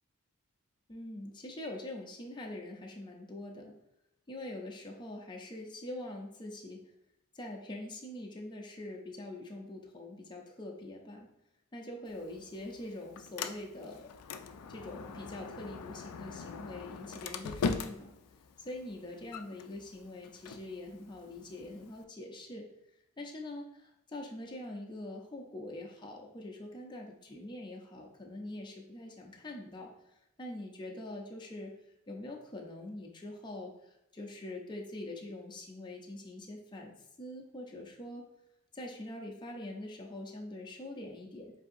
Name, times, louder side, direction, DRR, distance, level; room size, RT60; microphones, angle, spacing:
voice 1, 0.9-3.7 4.3-6.8 7.3-11.3 11.7-14.1 14.7-18.1 18.6-22.7 23.2-31.7 32.1-38.2 38.7-41.5, left 1 dB, 20° left, 0 dB, 0.6 m, -44 dB
Sliding door, 12.1-22.0, left 5 dB, 80° left, 0.4 m, -42 dB
7.3 x 2.7 x 2.6 m, 0.85 s
head